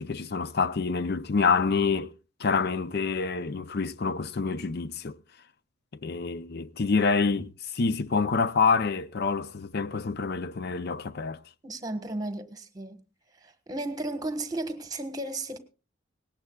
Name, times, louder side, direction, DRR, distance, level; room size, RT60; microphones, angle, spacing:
voice 1, 0.0-2.1 2.4-5.2 6.0-11.4, left 4 dB, 50° left, 0.6 m, -27 dB
voice 2, 11.6-13.0 13.4-15.6, right 2 dB, 20° right, 1.3 m, -34 dB
18.5 x 17.5 x 2.3 m
head